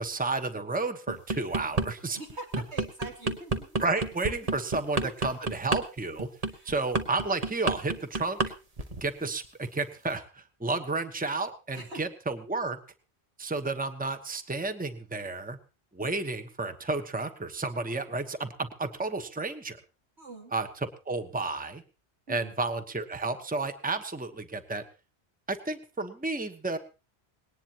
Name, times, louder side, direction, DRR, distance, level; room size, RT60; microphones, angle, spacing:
voice 1, 0.0-2.2 3.8-6.3 6.6-8.4 9.0-12.8 13.4-15.6 15.9-19.8 20.5-21.8 22.3-24.8 25.5-26.8, right 3 dB, 10° right, 9 dB, 1.0 m, -32 dB
sound 1, 1.1-1.9 2.3-8.5 8.8-9.1, right 3 dB, 35° right, 1.3 m, -29 dB
voice 2, 2.1-3.8 4.4-4.5 5.0-5.1 6.4-6.7 11.7-12.0 20.2-20.5 22.3-22.5, right 2 dB, 90° right, 2 dB, 3.1 m, -43 dB
20.0 x 18.0 x 3.0 m, 0.32 s
omnidirectional pair, 1.1 m